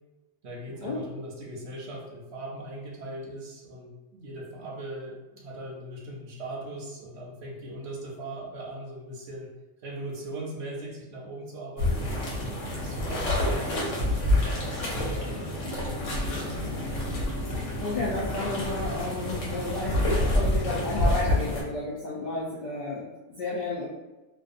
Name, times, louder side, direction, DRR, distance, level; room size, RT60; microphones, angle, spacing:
voice 1, 0.4-9.5 9.8-12.1 12.8-16.7, right 1 dB, 70° right, -1 dB, 0.8 m, -40 dB
sound 1, 11.8-21.6, left 1 dB, 90° left, 1.1 m, -28 dB
voice 2, 17.8-23.0 23.4-23.9, left 2 dB, 65° left, -6 dB, 0.4 m, -32 dB
2.6 x 2.2 x 2.4 m, 1.1 s
omnidirectional pair, 1.3 m